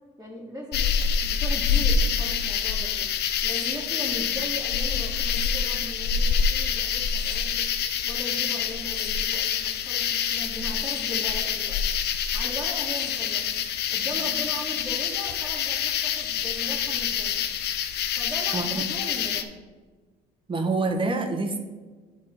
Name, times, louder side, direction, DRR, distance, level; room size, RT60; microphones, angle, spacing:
voice 1, 0.2-3.1 3.4-7.7 8.0-11.8 12.3-13.6 13.9-17.5 18.1-19.5, equal, 10° right, -6 dB, 1.5 m, -38 dB
sound 1, 0.7-19.4, left 7 dB, 60° left, 0.6 m, -26 dB
voice 2, 18.5-18.8 20.5-21.6, right 3 dB, 25° right, 5 dB, 1.1 m, -26 dB
9.8 x 3.7 x 4.4 m, 1.4 s
cardioid pair, 100°, 20 cm